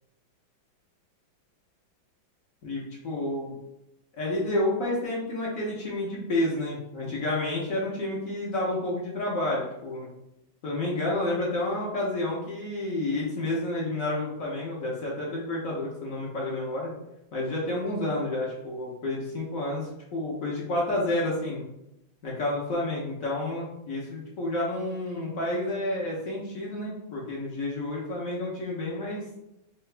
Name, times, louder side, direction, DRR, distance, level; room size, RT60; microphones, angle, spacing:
voice 1, 2.6-3.5 4.2-10.1 10.6-16.9 17.3-21.6 22.2-29.3, left 1 dB, 55° left, -4 dB, 1.0 m, -30 dB
4.7 x 2.3 x 3.2 m, 0.86 s
omnidirectional pair, 2.2 m